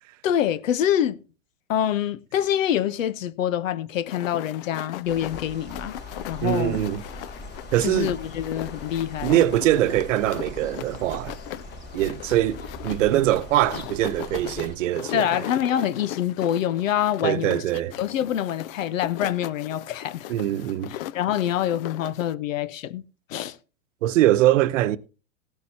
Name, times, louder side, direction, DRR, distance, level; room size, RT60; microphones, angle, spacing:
voice 1, 0.2-1.2 1.7-5.9 6.3-6.8 7.8-9.4 15.1-17.6 18.0-20.3 20.9-23.0 23.3-23.6, left 10 dB, 85° left, 0.9 m, -25 dB
sound 1, 4.1-22.3, left 14 dB, 45° left, 0.5 m, -39 dB
sound 2, 5.1-14.8, left 2 dB, 25° left, 3.7 m, -41 dB
voice 2, 6.4-7.0 7.7-8.1 9.2-11.4 11.9-15.4 17.2-17.9 20.3-20.9 24.0-25.0, right 14 dB, 70° right, 0.9 m, -22 dB
17.0 x 9.6 x 2.8 m
supercardioid pair, 140°, 39 cm